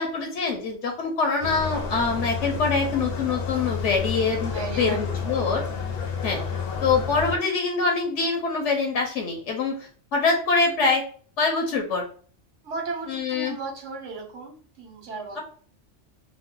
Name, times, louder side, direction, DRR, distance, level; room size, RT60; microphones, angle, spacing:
voice 1, 0.0-5.6 6.2-6.4 6.8-11.0 11.4-12.0 13.1-13.5, left 4 dB, 80° left, 2 dB, 1.0 m, -24 dB
sound 1, 1.4-7.4, left 6 dB, 60° left, 0.8 m, -30 dB
voice 2, 4.5-5.0 5.2-5.4 12.6-15.4, right 4 dB, 85° right, 1 dB, 1.3 m, -35 dB
3.0 x 2.0 x 3.7 m, 0.43 s
omnidirectional pair, 1.2 m